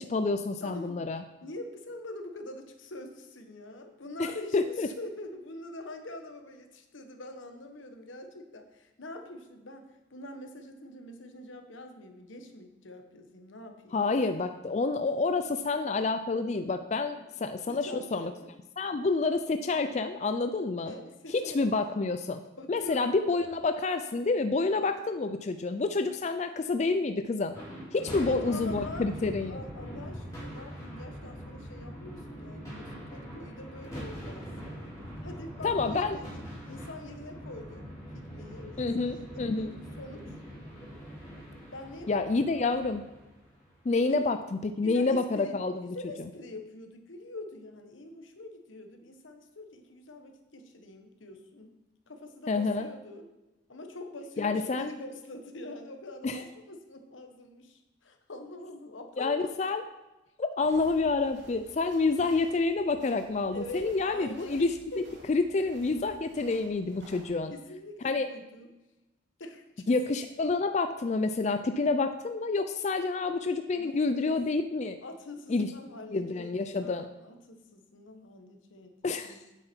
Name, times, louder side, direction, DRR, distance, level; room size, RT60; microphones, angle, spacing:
voice 1, 0.0-1.2 4.2-4.9 13.9-18.3 18.8-20.9 21.3-22.4 22.7-27.6 27.9-29.6 35.6-36.2 38.8-39.7 42.1-43.0 43.9-46.0 52.5-52.9 54.4-54.9 56.2-56.4 59.2-59.8 60.4-67.5 68.0-68.3 69.9-75.0 75.5-75.7 76.1-77.1 79.0-79.3, left 3 dB, 35° left, 8 dB, 0.4 m, -28 dB
voice 2, 0.6-1.0 1.4-14.2 17.1-17.3 17.7-18.5 18.8-19.0 20.8-21.6 22.6-23.2 24.9-25.0 28.1-34.7 35.2-37.9 38.1-40.4 41.7-42.9 44.1-44.2 44.8-45.6 45.8-51.8 52.1-53.2 53.7-59.5 63.5-65.2 67.5-68.8 69.4-69.8 73.8-74.4 75.0-79.4, left 1 dB, 85° left, 5 dB, 1.2 m, -44 dB
sound 1, 27.5-43.9, equal, 15° left, 3.5 m, -42 dB
sound 2, 60.6-67.3, right 1 dB, 65° right, 2.3 m, -54 dB
8.9 x 7.7 x 4.4 m, 1.0 s
head